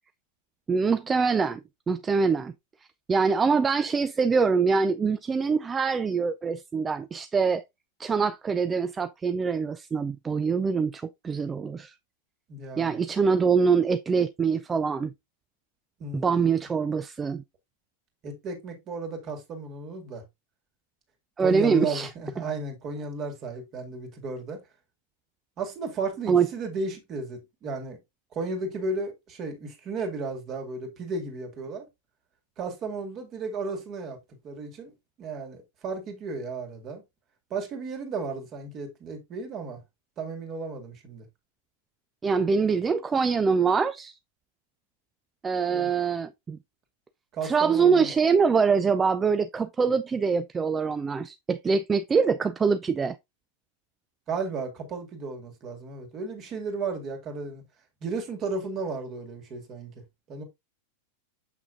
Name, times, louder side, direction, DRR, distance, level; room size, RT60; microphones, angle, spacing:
voice 1, 0.7-2.5 3.1-7.6 8.0-11.9 12.8-15.1 16.1-17.4 21.4-22.1 26.3-26.5 42.2-44.1 45.4-46.6 47.4-53.2, right 5 dB, 15° right, 0.3 m, -24 dB
voice 2, 12.5-13.0 16.0-16.4 18.2-20.2 21.4-24.6 25.6-28.0 28.3-31.9 32.6-34.2 34.4-34.9 35.2-37.0 37.5-39.8 40.2-41.2 45.7-45.9 47.3-48.1 54.3-57.6 58.0-60.0 60.3-60.4, right 3 dB, 30° right, 2.2 m, -34 dB
7.6 x 5.8 x 2.5 m
figure-of-eight pair, 90°, 0 cm